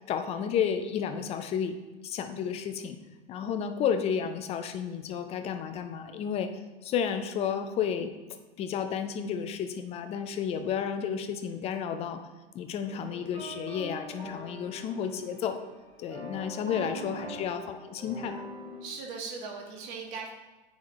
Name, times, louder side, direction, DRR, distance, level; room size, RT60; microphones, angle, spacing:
voice 1, 0.1-1.8 2.0-3.0 3.3-6.5 6.8-8.1 8.6-12.2 12.5-15.6 16.0-18.4, left 7 dB, 20° left, 8 dB, 0.4 m, -32 dB
sound 1, 12.9-18.9, right 1 dB, 85° right, 1.5 m, -43 dB
voice 2, 16.9-17.6 18.8-20.3, right 5 dB, 45° right, 1 dB, 1.5 m, -40 dB
9.3 x 4.2 x 3.0 m, 1.2 s
figure-of-eight pair, 90°, 33 cm